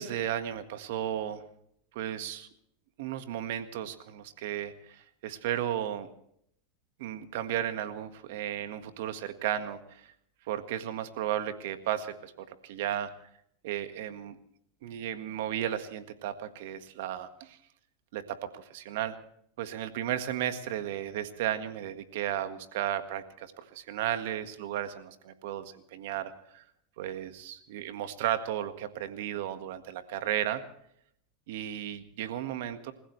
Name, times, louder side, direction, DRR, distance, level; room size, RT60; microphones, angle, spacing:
voice 1, 0.0-1.4 1.9-2.5 3.0-6.1 7.0-10.1 10.4-13.1 13.6-14.4 14.8-17.6 18.1-19.2 19.6-26.6 27.0-30.6 31.5-32.9, right 11 dB, 70° right, 9 dB, 1.7 m, -34 dB
28.5 x 15.5 x 3.3 m, 0.68 s
hypercardioid pair, 105°, 0 cm